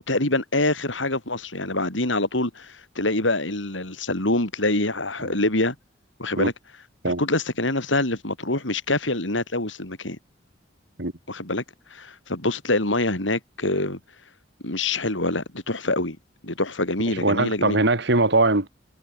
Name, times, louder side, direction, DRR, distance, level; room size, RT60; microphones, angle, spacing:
voice 1, 0.0-5.8 6.2-6.5 7.0-10.2 11.3-11.6 11.9-14.0 14.6-16.2 16.4-17.8, left 2 dB, 85° left, 6.4 m, -25 dB
voice 2, 17.1-18.7, right 2 dB, 65° right, 2.6 m, -21 dB
head